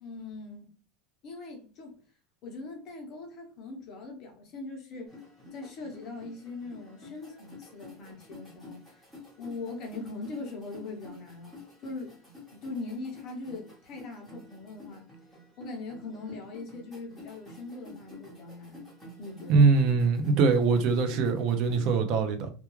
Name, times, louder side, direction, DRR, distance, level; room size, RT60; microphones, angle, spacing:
voice 1, 0.0-0.7 1.2-2.0 2.4-5.2 5.5-9.1 9.4-12.2 12.5-15.1 15.6-18.8 19.2-19.8, left 3 dB, 40° left, 0.7 m, -41 dB
sound 1, 5.1-21.9, left 3 dB, ahead, 1.0 m, -50 dB
voice 2, 19.5-22.5, right 4 dB, 50° right, 0.5 m, -23 dB
2.3 x 2.2 x 3.0 m
supercardioid pair, 160°, 0 cm